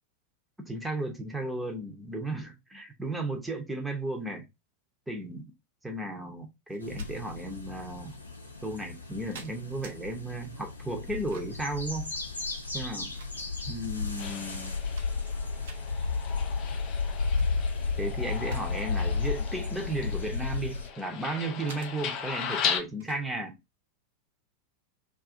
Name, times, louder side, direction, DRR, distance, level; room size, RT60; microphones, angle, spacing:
voice 1, 0.7-4.4 5.1-5.5 5.8-8.2 8.6-12.1 12.7-13.1 13.7-14.8 18.0-23.6, right 2 dB, 5° right, 0.8 m, -34 dB
sound 1, 6.7-7.1 8.0-8.2 8.9-10.0 11.0-11.7 12.6-13.7 14.3-14.4 14.7-15.3 15.6-15.8 17.2-17.5 17.9-18.7 19.0-19.3 20.0-21.1 21.7-21.9 23.0-23.2, right 5 dB, 55° right, 0.7 m, -50 dB
sound 2, 6.8-20.9, left 4 dB, 80° left, 0.7 m, -33 dB
sound 3, 14.2-22.8, left 7 dB, 35° left, 0.5 m, -37 dB
2.7 x 2.5 x 3.5 m
figure-of-eight pair, 90°, 0 cm